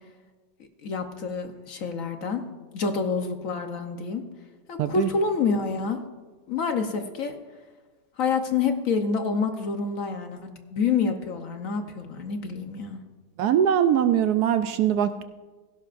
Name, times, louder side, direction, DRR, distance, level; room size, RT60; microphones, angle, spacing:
voice 1, 0.8-2.4 2.7-4.2 4.7-6.0 6.5-7.4 8.2-13.0, left 5 dB, 55° left, 6 dB, 1.2 m, -27 dB
voice 2, 4.8-5.1 13.4-15.2, right 9 dB, 70° right, 10 dB, 1.0 m, -22 dB
16.5 x 16.0 x 2.5 m, 1.3 s
omnidirectional pair, 1.9 m